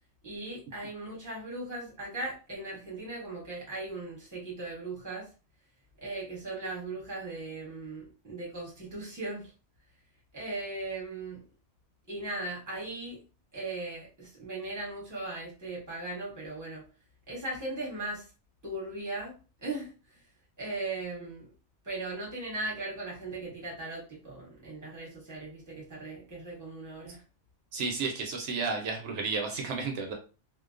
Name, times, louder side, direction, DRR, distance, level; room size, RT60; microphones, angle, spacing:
voice 1, 0.2-5.3 6.0-9.5 10.3-11.4 12.1-13.2 13.5-16.8 17.3-18.2 18.6-19.3 19.6-19.9 20.6-21.5 21.8-27.2, right 2 dB, 15° right, -5 dB, 1.0 m, -38 dB
voice 2, 27.7-30.1, right 4 dB, 75° right, 2 dB, 0.9 m, -32 dB
2.4 x 2.1 x 2.4 m, 0.34 s
omnidirectional pair, 1.2 m